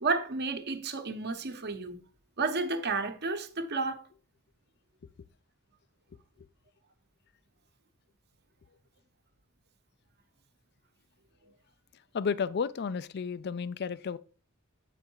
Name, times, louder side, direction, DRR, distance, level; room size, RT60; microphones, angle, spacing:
voice 1, 0.0-2.0 2.4-4.1, right 3 dB, 50° right, 1.0 m, -31 dB
voice 2, 12.1-14.2, left 6 dB, 50° left, 0.4 m, -32 dB
8.3 x 5.1 x 4.6 m
head